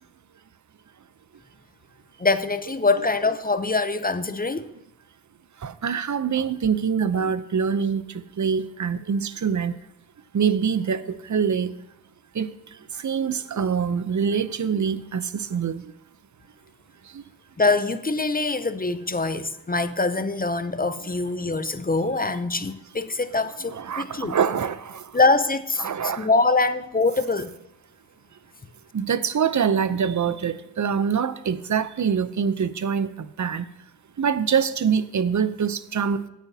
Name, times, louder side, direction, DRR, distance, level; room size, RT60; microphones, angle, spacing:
voice 1, 2.2-4.7 17.6-24.4 25.1-27.5, left 3 dB, 25° left, 0.5 m, -24 dB
voice 2, 5.6-8.0 8.4-9.7 10.3-11.7 12.4-12.5 13.0-15.8 23.7-25.0 25.8-26.3 28.9-33.6 34.2-36.3, right 7 dB, 50° right, 0.6 m, -24 dB
16.5 x 9.2 x 2.8 m
wide cardioid pair, 70°, 38 cm